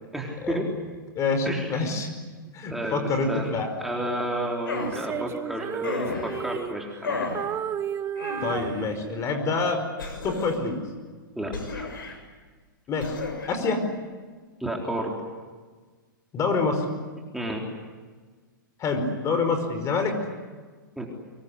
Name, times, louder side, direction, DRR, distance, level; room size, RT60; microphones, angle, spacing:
voice 1, 0.1-0.7 1.5-1.9 2.7-3.5 3.8-7.3 11.4-11.9 14.6-15.1 17.3-17.6 21.0-21.1, right 1 dB, ahead, -1 dB, 3.9 m, -31 dB
voice 2, 1.2-2.1 2.5-3.7 8.4-9.8 10.2-10.8 12.9-13.2 13.5-13.8 16.3-16.8 18.8-20.2, left 4 dB, 30° left, 7 dB, 5.1 m, -26 dB
sound 1, 4.6-5.0 5.8-6.4 7.0-7.4 8.2-8.8 10.0-10.7 11.5-12.2 13.0-13.5, left 3 dB, 80° left, 6.9 m, -32 dB
Female singing, 4.8-7.0 7.3-9.4, right 9 dB, 25° right, 1.0 m, -33 dB
24.5 x 22.5 x 9.8 m, 1.4 s
hypercardioid pair, 120°, 11 cm